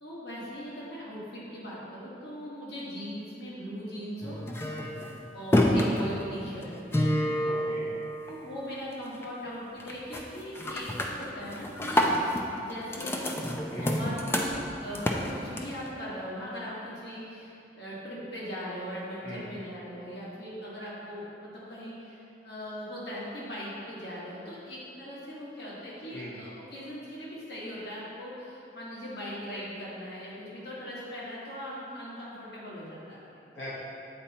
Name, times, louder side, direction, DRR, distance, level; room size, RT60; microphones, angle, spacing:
voice 1, 0.0-4.4 5.3-6.8 8.2-13.3 13.7-14.5 14.8-33.4, equal, 70° left, -8 dB, 1.5 m, -40 dB
sound 1, 4.2-8.7 9.1-9.5 9.8-10.2 10.5-15.9, equal, 15° left, 0.3 m, -29 dB
voice 2, 7.4-7.9 13.7-14.0 19.2-19.5 26.1-26.3 33.5-33.7, equal, 85° left, -10 dB, 1.3 m, -41 dB
8.5 x 4.2 x 2.9 m, 2.7 s
head